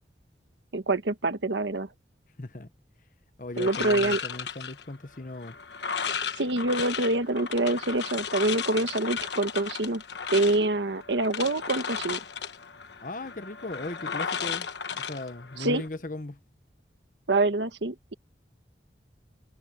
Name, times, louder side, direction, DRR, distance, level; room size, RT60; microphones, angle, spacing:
voice 1, 0.7-1.9 3.6-4.2 6.4-10.0 10.3-12.2 15.6-15.8 17.3-18.1, right 2 dB, 85° right, 1.3 m, -26 dB
voice 2, 2.4-2.7 3.4-5.6 13.0-16.4, left 2 dB, 50° left, 1.2 m, -38 dB
sound 1, 3.6-15.9, left 6 dB, 80° left, 1.2 m, -35 dB
head